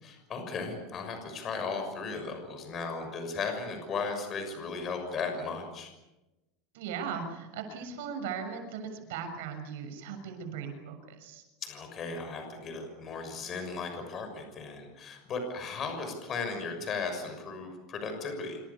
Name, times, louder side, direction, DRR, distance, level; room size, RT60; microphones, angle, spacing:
voice 1, 0.0-5.9 11.6-18.6, left 4 dB, 25° left, 6 dB, 6.2 m, -36 dB
voice 2, 6.7-11.4, right 6 dB, 75° right, 6 dB, 6.7 m, -38 dB
27.5 x 26.5 x 7.1 m, 1.0 s
supercardioid pair, 170°, 0 cm